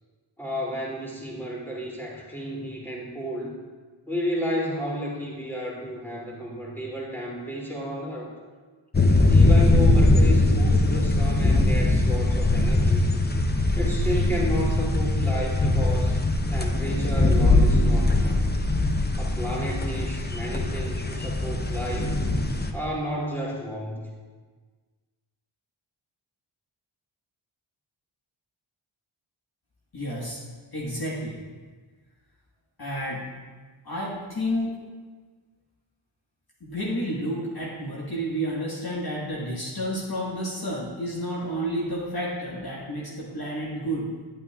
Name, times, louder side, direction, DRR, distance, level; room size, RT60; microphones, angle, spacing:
voice 1, 0.4-3.5 4.1-8.3 9.3-13.1 13.7-16.2 16.5-18.4 19.2-22.1 22.7-24.1, equal, 5° left, -5 dB, 2.8 m, -32 dB
sound 1, 8.9-22.7, left 2 dB, 20° left, 0.7 m, -21 dB
voice 2, 29.9-30.4 30.7-31.4 32.8-33.2 33.8-34.8 36.6-44.1, equal, 45° left, -5 dB, 1.6 m, -30 dB
11.0 x 8.6 x 2.4 m, 1.4 s
cardioid pair, 45°, 49 cm